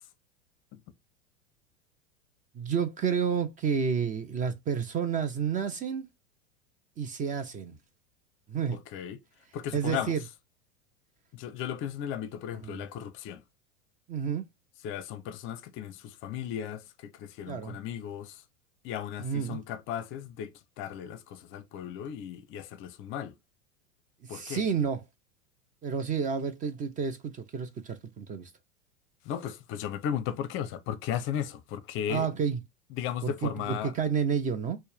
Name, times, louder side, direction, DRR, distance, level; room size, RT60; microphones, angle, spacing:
voice 1, 2.5-6.1 7.0-7.8 8.5-8.8 9.7-10.2 12.6-12.8 14.1-14.5 17.5-17.8 19.2-19.6 24.3-25.0 25.8-28.5 32.1-32.6 33.2-34.8, right 6 dB, 25° right, 0.5 m, -30 dB
voice 2, 8.7-9.2 9.5-10.1 11.3-13.4 14.8-18.4 18.8-23.3 24.3-24.6 29.3-32.3 32.9-33.9, left 9 dB, 35° left, 0.6 m, -36 dB
4.3 x 2.1 x 3.3 m
hypercardioid pair, 90°, 34 cm